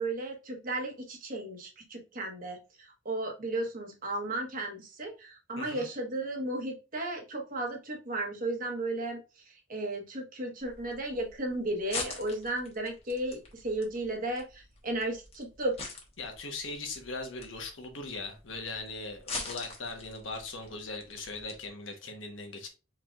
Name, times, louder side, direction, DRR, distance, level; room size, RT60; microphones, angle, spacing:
voice 1, 0.0-9.2 9.7-15.8, right 2 dB, 45° right, 1.3 m, -34 dB
voice 2, 5.6-5.9 16.2-22.7, left 3 dB, 75° left, 1.2 m, -40 dB
sound 1, 10.6-21.7, left 3 dB, 30° left, 1.2 m, -44 dB
4.7 x 4.5 x 2.5 m
head